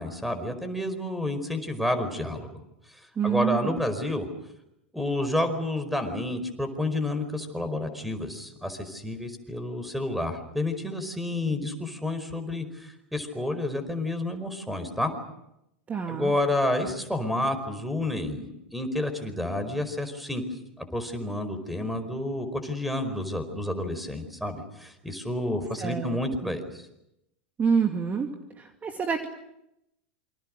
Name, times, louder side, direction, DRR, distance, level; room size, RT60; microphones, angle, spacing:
voice 1, 0.0-2.5 2.9-4.3 4.9-15.1 16.1-20.4 20.8-26.9, left 1 dB, ahead, 10 dB, 4.9 m, -30 dB
voice 2, 3.2-3.8 15.9-16.3 25.8-26.5 27.6-28.3 28.6-29.3, right 6 dB, 25° right, 4 dB, 2.5 m, -27 dB
28.0 x 25.5 x 6.5 m, 0.83 s
hypercardioid pair, 95°, 6 cm